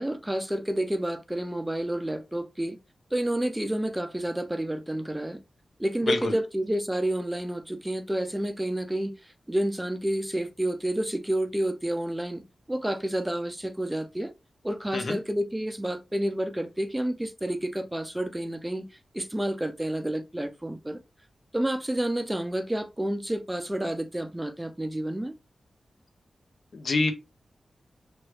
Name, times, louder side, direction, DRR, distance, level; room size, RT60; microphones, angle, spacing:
voice 1, 0.0-2.8 3.1-5.4 5.8-12.4 12.7-14.3 14.6-18.9 19.1-21.0 21.5-25.3, right 1 dB, 10° right, 0.4 m, -29 dB
voice 2, 26.7-27.1, left 3 dB, 60° left, 0.6 m, -26 dB
3.1 x 2.3 x 3.0 m
wide cardioid pair, 115°, 0 cm